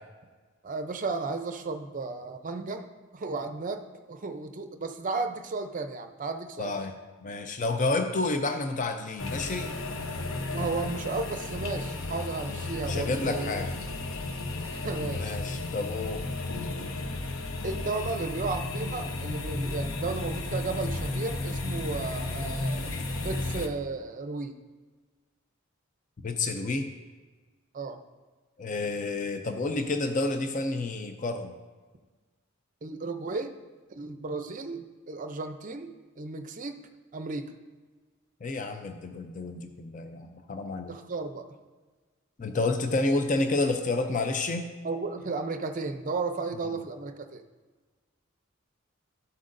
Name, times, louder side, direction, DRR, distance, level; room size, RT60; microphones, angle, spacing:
voice 1, 0.6-2.9 3.1-6.7 10.4-13.5 14.6-15.4 17.6-22.9 23.2-24.5 27.7-28.0 32.8-33.5 33.9-35.9 36.2-36.8 37.1-37.5 40.9-41.4 44.8-47.4, right 3 dB, 40° right, 7 dB, 0.6 m, -34 dB
voice 2, 6.6-6.9 7.2-9.7 12.8-13.7 15.1-16.2 26.2-26.9 28.6-31.5 38.4-40.9 42.4-44.7 46.7-46.8, left 2 dB, 40° left, 6 dB, 0.5 m, -30 dB
sound 1, 9.2-23.7, left 2 dB, 80° left, 0.7 m, -33 dB
13.0 x 7.7 x 2.6 m, 1.4 s
head